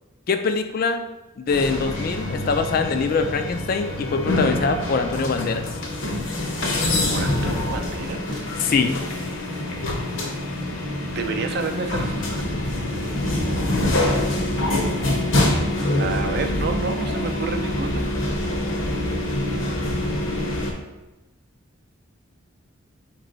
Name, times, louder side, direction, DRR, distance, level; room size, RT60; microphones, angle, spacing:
voice 1, 0.3-1.1 1.4-5.6 8.6-9.0, left 4 dB, 45° left, 7 dB, 0.3 m, -23 dB
sound 1, 1.5-20.7, left 1 dB, 65° left, 0.8 m, -25 dB
voice 2, 7.1-8.5 11.1-12.5 16.0-18.1, right 4 dB, 50° right, 5 dB, 0.4 m, -29 dB
4.4 x 3.1 x 3.9 m, 1.0 s
head